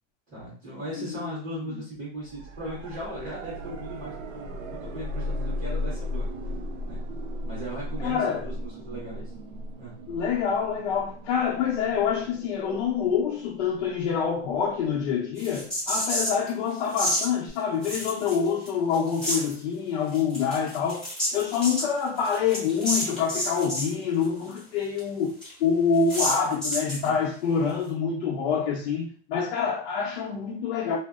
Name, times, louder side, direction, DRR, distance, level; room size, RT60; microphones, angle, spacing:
voice 1, 0.3-6.3 6.8-7.0 7.4-9.3 9.8-9.9 27.0-27.1, right 1 dB, 20° right, 1.3 m, -38 dB
voice 2, 1.0-1.4 1.7-1.8 8.0-8.5 10.1-31.0, left 6 dB, 65° left, 0.6 m, -26 dB
sound 1, 2.2-15.1 17.5-17.6, left 1 dB, 75° right, 0.6 m, -36 dB
sound 2, 15.4-16.5 16.9-17.3 17.8-18.7 18.9-19.5 20.1-23.9 24.2-24.3 24.6-24.7 25.0-25.1 25.4-25.5 26.1-27.1, equal, ahead, 1.0 m, -29 dB
2.7 x 2.0 x 2.3 m
supercardioid pair, 155°, 37 cm